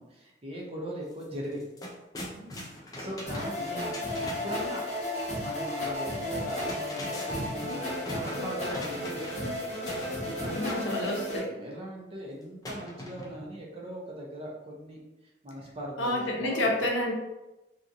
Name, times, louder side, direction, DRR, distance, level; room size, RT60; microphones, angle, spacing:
voice 1, 0.0-1.6 2.3-2.5 2.9-3.8 4.2-4.8 5.4-9.5 10.2-11.1 11.5-15.0 15.4-16.8, right 1 dB, 30° right, -2 dB, 0.6 m, -40 dB
sound 1, 1.1-1.2 1.5-4.6 6.3-9.5 9.9-10.9 12.6-13.5, left 1 dB, 20° left, 0.4 m, -41 dB
sound 2, 3.3-11.4, left 1 dB, 40° left, 1.0 m, -33 dB
voice 2, 10.5-11.6 16.0-17.1, left 1 dB, 85° left, 0 dB, 0.6 m, -29 dB
2.8 x 2.4 x 2.5 m, 1.0 s
head